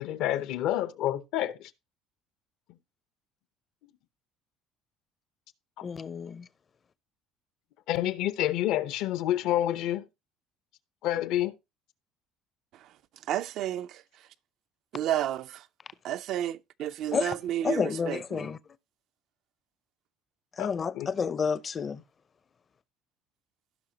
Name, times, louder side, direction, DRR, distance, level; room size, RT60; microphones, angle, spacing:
voice 1, 0.0-1.7 5.8-5.9 7.9-10.1 11.0-11.6 20.6-21.1, left 13 dB, 70° left, 0.7 m, -28 dB
voice 2, 5.8-6.5 17.1-17.3 17.6-18.6 20.6-22.0, left 6 dB, 30° left, 0.6 m, -30 dB
voice 3, 13.3-14.3 14.9-15.7 16.0-18.5, right 11 dB, 60° right, 0.5 m, -32 dB
16.0 x 5.7 x 2.8 m
cardioid pair, 135°, 0 cm